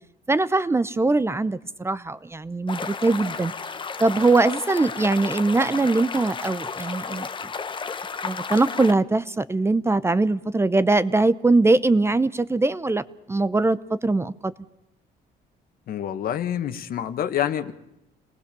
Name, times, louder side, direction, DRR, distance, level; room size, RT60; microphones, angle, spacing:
voice 1, 0.3-3.5 4.0-7.3 8.2-13.0 13.3-14.5, right 3 dB, 15° right, 15 dB, 0.8 m, -21 dB
sound 1, 2.7-8.9, left 5 dB, 30° left, 1.2 m, -32 dB
voice 2, 15.9-17.7, left 10 dB, 60° left, 11 dB, 1.7 m, -27 dB
27.0 x 19.0 x 7.0 m, 0.87 s
cardioid pair, 110°, 17 cm